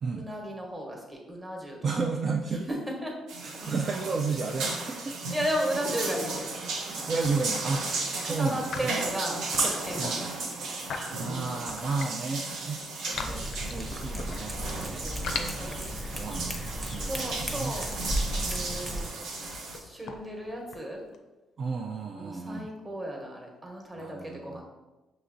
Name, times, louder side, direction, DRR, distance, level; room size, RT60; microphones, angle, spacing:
voice 1, 0.2-1.8 2.5-3.1 3.5-3.8 5.3-6.5 8.2-10.5 14.8-15.3 15.6-15.8 17.0-21.0 22.2-24.6, equal, 20° right, 0 dB, 1.0 m, -35 dB
voice 2, 1.8-2.7 3.4-5.2 6.9-8.7 10.0-10.1 11.1-12.8 13.1-15.6 16.1-17.7 21.6-22.7 24.0-24.6, right 4 dB, 45° right, 2 dB, 0.3 m, -33 dB
sound 1, 3.3-19.8, right 3 dB, 85° right, 0.6 m, -35 dB
sound 2, 6.8-7.9 8.5-12.2 12.6-14.7 15.1-21.1, left 5 dB, 70° left, 0.4 m, -40 dB
Cat, 13.1-19.1, equal, 5° left, 0.6 m, -35 dB
5.6 x 2.9 x 2.5 m, 1.1 s
cardioid pair, 90°, 0 cm